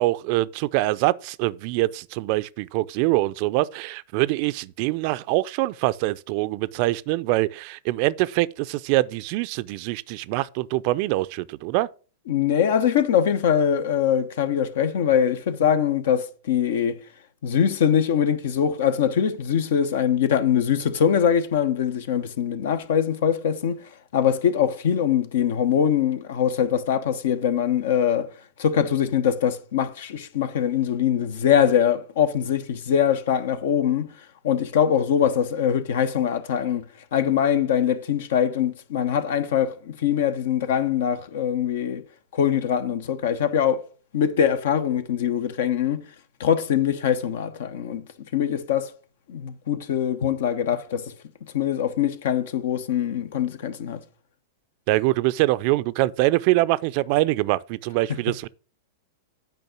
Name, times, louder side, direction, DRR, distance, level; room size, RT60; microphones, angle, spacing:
voice 1, 0.0-11.9 54.9-58.5, right 18 dB, 50° right, 0.4 m, -24 dB
voice 2, 12.3-17.0 17.4-28.3 28.6-34.1 34.4-36.8 37.1-42.0 42.3-43.8 44.1-46.1 46.4-48.0 48.3-48.9 49.3-51.1 51.5-54.0, left 8 dB, 65° left, 0.9 m, -23 dB
9.1 x 5.2 x 6.1 m
hypercardioid pair, 100°, 0 cm